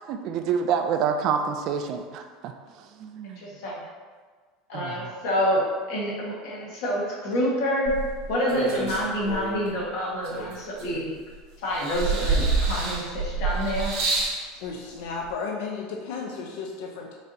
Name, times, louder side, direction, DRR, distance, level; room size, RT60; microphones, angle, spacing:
voice 1, 0.0-2.5 2.8-3.5 4.7-5.1, right 7 dB, 45° right, 6 dB, 0.3 m, -28 dB
voice 2, 3.4-3.8 4.7-7.9 8.3-11.1 11.6-13.9, equal, 55° left, -4 dB, 1.4 m, -27 dB
sound 1, 7.9-9.7 10.2-11.3 11.7-14.4 15.3-15.4, right 3 dB, 60° right, 1.5 m, -27 dB
voice 3, 14.6-17.1, left 4 dB, 70° left, 0 dB, 0.5 m, -34 dB
4.6 x 4.1 x 2.7 m, 1.5 s
supercardioid pair, 165°, 0 cm